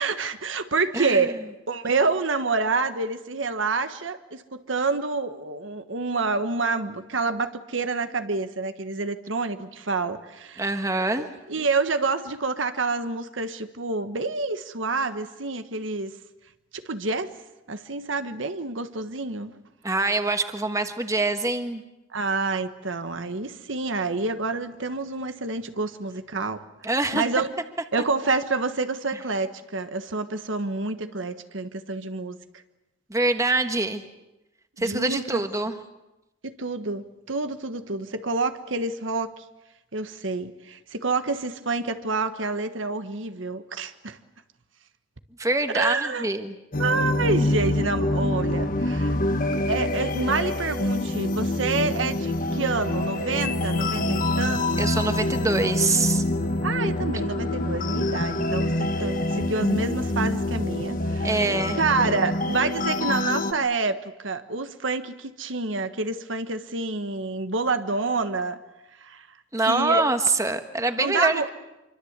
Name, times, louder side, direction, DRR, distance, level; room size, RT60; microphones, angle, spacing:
voice 1, 0.0-1.4 1.7-10.7 11.5-16.1 16.7-17.3 17.7-19.5 22.1-26.6 26.9-27.5 27.9-32.4 34.8-35.7 36.4-39.3 39.9-44.2 45.7-46.3 46.8-49.2 49.7-54.8 56.6-61.4 61.8-68.6 69.0-69.3 69.7-70.1 71.0-71.5, right 3 dB, 75° right, 1.4 m, -28 dB
voice 2, 0.9-1.3 10.6-11.3 19.8-21.8 26.8-27.2 33.1-34.0 34.8-35.7 45.4-46.5 54.8-56.2 61.2-61.8 69.5-71.5, right 2 dB, 15° right, 1.4 m, -24 dB
sound 1, 46.7-63.5, left 1 dB, 45° left, 1.5 m, -26 dB
26.0 x 24.5 x 8.2 m
head